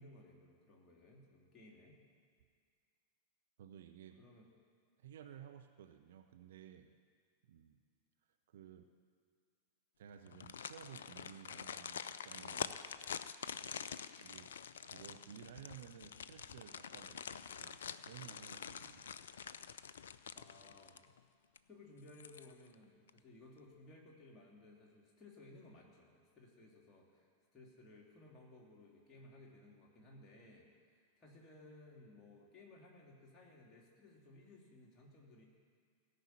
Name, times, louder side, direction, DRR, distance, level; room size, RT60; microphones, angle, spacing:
voice 1, 0.0-2.0 4.2-4.5 20.3-21.0 21.7-35.5, left 2 dB, 20° left, -3 dB, 2.9 m, -59 dB
voice 2, 3.6-4.2 5.0-6.9 7.4-7.8 8.5-8.9 10.0-12.8 14.2-14.5 14.8-19.0, right 9 dB, 60° right, 6 dB, 0.7 m, -55 dB
sound 1, 10.3-21.2 21.6-21.7 22.1-22.7 23.1-23.2, left 7 dB, 65° left, 0.4 m, -47 dB
17.0 x 5.7 x 8.4 m, 2.1 s
figure-of-eight pair, 90°, 0 cm